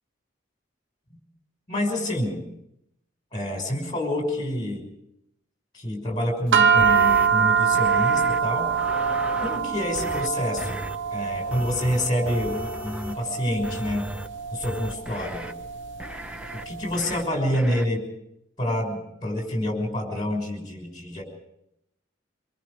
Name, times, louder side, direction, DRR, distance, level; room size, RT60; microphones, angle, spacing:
voice 1, 1.7-2.5 3.3-4.9 5.7-8.7 9.4-14.1 14.5-15.5 16.5-18.1 18.6-21.2, left 1 dB, 25° left, 2 dB, 5.7 m, -28 dB
sound 1, 6.5-17.0, right 6 dB, 85° right, 1.1 m, -24 dB
sound 2, 6.8-7.3 7.8-8.4 8.7-9.6 9.9-10.3 10.6-11.0 11.5-13.2 13.6-14.3 14.6-15.5 16.0-16.6 16.9-17.2 17.5-17.9, right 1 dB, 5° right, 0.7 m, -36 dB
25.0 x 23.0 x 4.9 m, 0.81 s
head